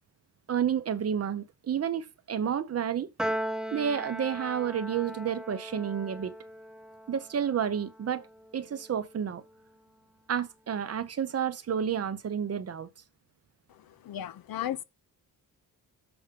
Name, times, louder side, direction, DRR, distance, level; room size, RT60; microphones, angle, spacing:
voice 1, 0.5-3.1 3.7-6.4 7.1-8.3 8.5-9.4 10.3-12.9, right 8 dB, 40° right, 0.7 m, -30 dB
Piano, 3.2-9.7, equal, ahead, 0.3 m, -39 dB
voice 2, 13.7-14.8, left 11 dB, 65° left, 0.7 m, -36 dB
6.9 x 4.9 x 5.2 m
cardioid pair, 135°, 39 cm